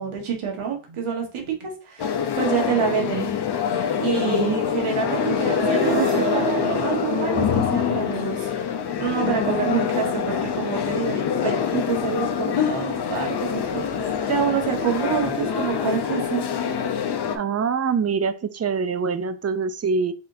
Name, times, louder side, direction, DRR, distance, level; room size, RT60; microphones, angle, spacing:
voice 1, 0.0-3.3 4.0-8.6 9.0-16.4, right 7 dB, 85° right, 1.6 m, -27 dB
sound 1, 2.0-17.4, left 8 dB, 55° left, 0.8 m, -25 dB
voice 2, 4.2-4.6 17.3-20.1, right 5 dB, 35° right, 0.5 m, -24 dB
sound 2, 4.9-9.0, right 6 dB, 60° right, 1.0 m, -30 dB
4.2 x 3.6 x 2.7 m
cardioid pair, 85°, 49 cm